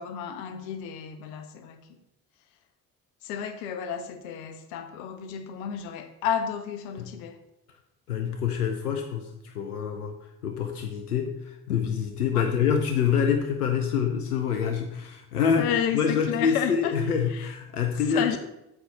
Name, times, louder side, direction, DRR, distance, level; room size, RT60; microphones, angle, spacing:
voice 1, 0.0-2.0 3.2-7.4 12.3-12.5 15.6-16.9 17.3-17.5 18.1-18.4, left 8 dB, 70° left, 8 dB, 0.9 m, -31 dB
voice 2, 8.1-10.2 10.4-18.4, left 7 dB, 90° left, 5 dB, 0.6 m, -26 dB
7.9 x 4.7 x 5.5 m, 0.86 s
figure-of-eight pair, 45°, 44 cm